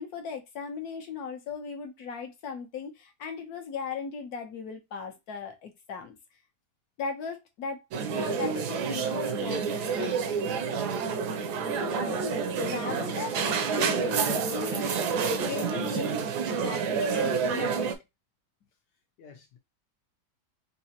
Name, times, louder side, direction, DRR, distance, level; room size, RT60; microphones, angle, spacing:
voice 1, 0.0-6.2 7.0-7.9 8.1-10.5 11.8-12.2 12.6-14.8 15.4-16.3 16.6-17.9, left 5 dB, 65° left, 1.3 m, -38 dB
sound 1, 7.9-17.9, right 5 dB, 80° right, 1.2 m, -29 dB
voice 2, 12.9-13.4 14.1-14.7 19.2-19.6, left 6 dB, 90° left, 1.5 m, -49 dB
4.1 x 2.8 x 2.8 m
omnidirectional pair, 1.8 m